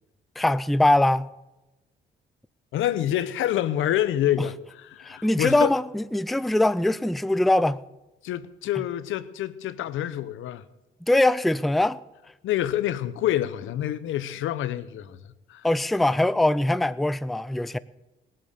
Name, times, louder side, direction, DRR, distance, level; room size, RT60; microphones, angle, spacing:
voice 1, 0.4-1.3 4.4-4.5 5.0-7.8 11.0-12.0 15.6-17.8, left 1 dB, ahead, 0.4 m, -22 dB
voice 2, 2.7-5.7 8.2-10.6 12.4-15.2 15.5-15.7, left 12 dB, 80° left, 0.8 m, -27 dB
19.5 x 7.7 x 6.7 m
cardioid pair, 90°, 20 cm